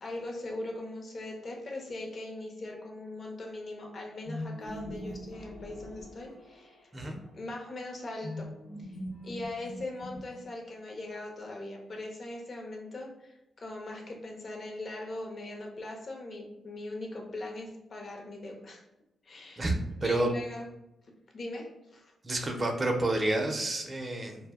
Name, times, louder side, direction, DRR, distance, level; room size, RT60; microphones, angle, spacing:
voice 1, 0.0-6.9 7.3-8.5 8.8-8.9 9.2-18.8 19.2-19.6 20.0-20.7 21.3-22.1, left 2 dB, 50° left, 1 dB, 0.6 m, -40 dB
sound 1, 4.2-6.8 8.2-10.7, left 1 dB, 85° left, 0.8 m, -42 dB
voice 2, 19.6-20.3 22.2-24.4, right 2 dB, 35° right, 2 dB, 0.5 m, -29 dB
2.2 x 2.0 x 3.5 m, 0.91 s
supercardioid pair, 45°, 0 cm